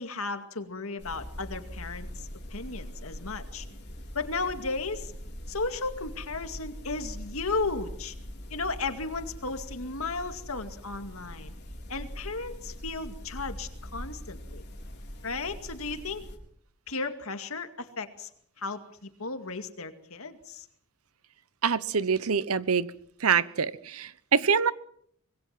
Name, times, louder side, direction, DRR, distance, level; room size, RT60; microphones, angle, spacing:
voice 1, 0.0-3.7 4.1-5.1 5.5-8.1 8.5-11.5 11.9-14.7 15.2-16.3 16.9-18.3 18.6-20.7, left 3 dB, 70° left, 8 dB, 2.3 m, -35 dB
sound 1, 1.0-16.4, equal, 50° left, 4.2 m, -42 dB
voice 2, 21.6-22.9 23.2-24.7, right 6 dB, 80° right, 18 dB, 0.9 m, -25 dB
25.0 x 21.0 x 5.9 m, 0.66 s
head